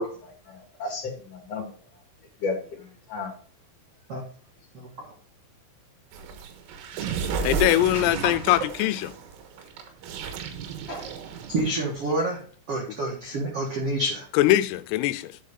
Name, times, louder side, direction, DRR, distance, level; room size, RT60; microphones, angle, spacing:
voice 1, 0.0-1.7 2.4-2.6 3.1-3.3 7.9-8.0 10.9-11.1, left 3 dB, 45° left, 2.4 m, -32 dB
voice 2, 4.7-5.1 11.5-12.4 12.7-14.3, right 1 dB, 70° right, 1.4 m, -28 dB
sound 1, 6.1-12.0, right 6 dB, 90° right, 4.0 m, -33 dB
voice 3, 7.4-9.1 14.3-15.4, left 15 dB, 90° left, 3.3 m, -22 dB
11.0 x 5.5 x 3.7 m
omnidirectional pair, 5.9 m